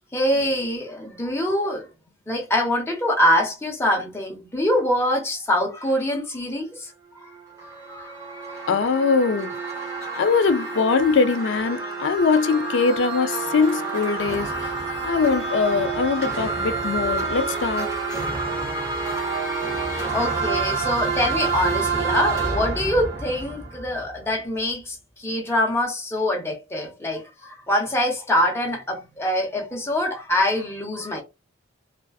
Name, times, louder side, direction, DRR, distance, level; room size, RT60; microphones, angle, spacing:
voice 1, 0.1-1.9 2.3-6.9 7.2-7.3 7.6-8.1 8.5-8.6 19.9-31.2, left 1 dB, 15° left, 0.9 m, -24 dB
sound 1, 7.3-24.3, right 4 dB, 15° right, 0.9 m, -28 dB
voice 2, 8.7-9.6 10.1-14.7 15.0-17.9, left 5 dB, 65° left, 0.4 m, -22 dB
2.5 x 2.3 x 2.3 m
head